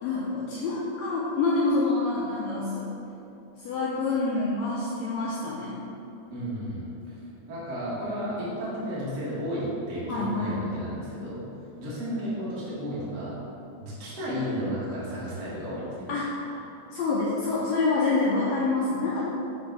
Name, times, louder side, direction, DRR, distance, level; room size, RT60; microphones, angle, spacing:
voice 1, 0.0-2.9 3.6-5.8 10.1-10.6 16.1-19.3, left 3 dB, 80° left, -5 dB, 1.6 m, -27 dB
voice 2, 6.3-7.2 7.5-11.4 11.7-13.3 13.8-15.9, equal, 50° right, -9 dB, 1.2 m, -33 dB
6.6 x 3.2 x 4.5 m, 2.9 s
omnidirectional pair, 3.7 m